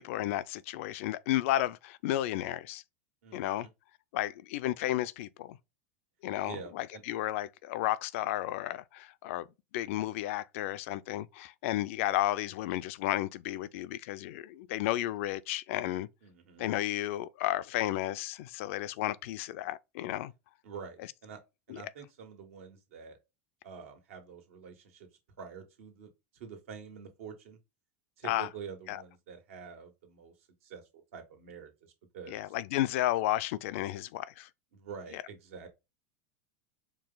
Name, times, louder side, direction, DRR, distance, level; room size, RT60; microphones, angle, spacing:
voice 1, 0.0-2.8 3.3-3.7 4.1-5.6 6.2-9.4 9.7-16.1 16.6-20.3 21.7-21.8 28.2-28.5 28.9-29.0 32.3-34.5 35.1-35.2, left 14 dB, 65° left, 0.4 m, -33 dB
voice 2, 3.2-3.7 6.5-7.0 16.2-16.6 20.6-21.4 21.7-23.2 23.6-25.1 25.4-27.6 28.2-30.3 30.6-30.8 31.1-32.5 34.7-35.7, right 6 dB, 75° right, 1.6 m, -47 dB
4.7 x 2.3 x 3.9 m
hypercardioid pair, 105°, 7 cm